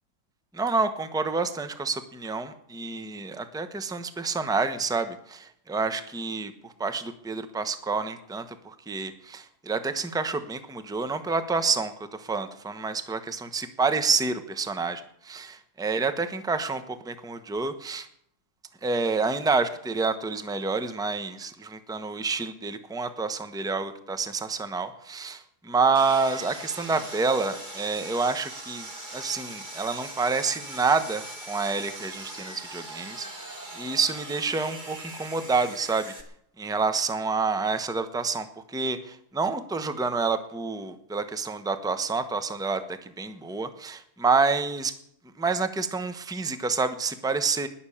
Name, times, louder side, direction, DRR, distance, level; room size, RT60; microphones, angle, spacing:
voice 1, 0.5-18.1 18.8-28.9 29.1-36.1 36.6-44.9 45.4-47.7, right 4 dB, 5° right, 10 dB, 0.5 m, -28 dB
Sawing, 25.9-36.2, right 1 dB, 25° right, 2.1 m, -41 dB
20.0 x 7.1 x 8.7 m, 0.69 s
omnidirectional pair, 2.1 m